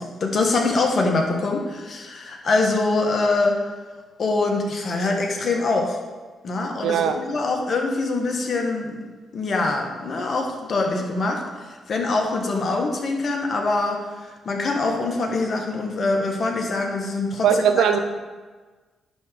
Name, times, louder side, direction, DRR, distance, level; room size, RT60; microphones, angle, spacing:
voice 1, 0.0-3.6 4.2-6.0 6.4-9.0 9.3-11.4 11.7-17.8, left 3 dB, 55° left, 2 dB, 1.4 m, -24 dB
voice 2, 6.8-7.2 17.4-18.0, right 8 dB, 80° right, 8 dB, 0.6 m, -19 dB
10.0 x 3.7 x 5.1 m, 1.4 s
supercardioid pair, 60°, 0 cm